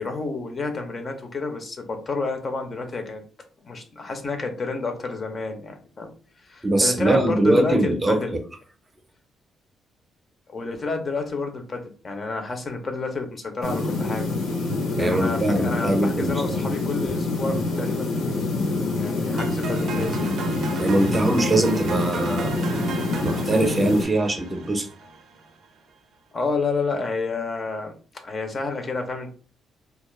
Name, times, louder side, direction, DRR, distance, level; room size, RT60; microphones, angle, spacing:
voice 1, 0.0-3.2 3.6-6.1 6.4-8.4 10.5-14.3 15.0-18.5 18.9-20.2 26.3-27.9 28.2-29.3, left 3 dB, 40° left, 5 dB, 0.5 m, -29 dB
voice 2, 6.6-8.2 15.0-16.6 20.8-22.5 23.2-24.9, right 1 dB, 20° right, 5 dB, 0.6 m, -22 dB
sound 1, 13.6-24.1, left 2 dB, 75° left, 0.7 m, -26 dB
sound 2, 19.4-25.5, right 5 dB, 70° right, 0.4 m, -33 dB
2.2 x 2.0 x 3.1 m, 0.39 s
cardioid pair, 90°, 0 cm